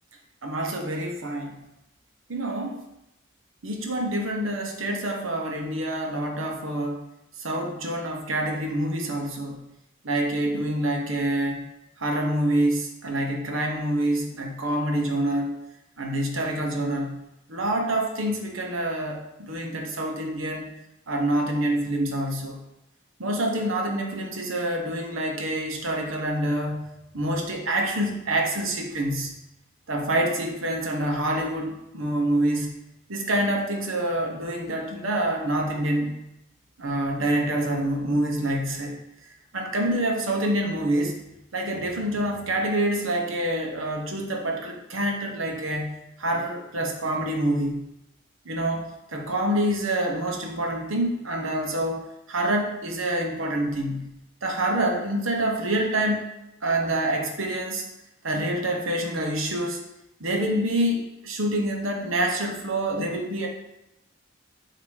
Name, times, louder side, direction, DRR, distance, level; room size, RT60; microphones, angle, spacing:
voice 1, 0.4-1.6 2.3-2.8 3.6-7.0 7.4-9.6 10.0-11.7 12.0-15.5 16.0-17.2 17.5-20.7 21.1-22.6 23.2-26.9 27.1-29.4 29.9-32.7 33.1-36.1 36.8-39.0 39.5-41.2 41.5-45.9 46.2-47.8 48.4-56.3 56.6-57.8 58.2-59.8 60.2-63.5, right 1 dB, 80° right, 1 dB, 1.0 m, -26 dB
8.5 x 2.9 x 4.9 m, 0.88 s
head